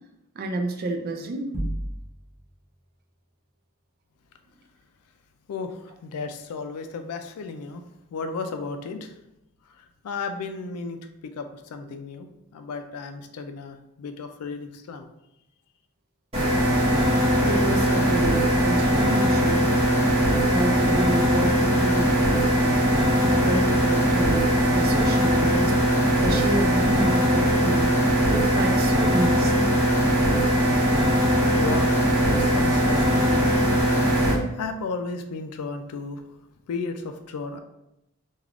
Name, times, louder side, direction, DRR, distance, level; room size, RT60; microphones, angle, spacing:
voice 1, 0.4-1.5 17.0-19.6 20.5-22.9 23.2-25.7 26.2-27.9 28.3-29.6, right 2 dB, 45° right, 5 dB, 0.3 m, -29 dB
sound 1, 1.5-2.5, right 1 dB, 25° left, 0.5 m, -31 dB
voice 2, 5.5-7.8 8.1-9.1 9.8-15.1 31.2-31.9 32.2-33.6 34.5-36.2 36.7-37.6, left 4 dB, 85° left, 8 dB, 0.3 m, -34 dB
sound 2, 16.3-34.3, equal, 25° right, 1.0 m, -20 dB
3.3 x 2.3 x 2.4 m, 0.89 s
head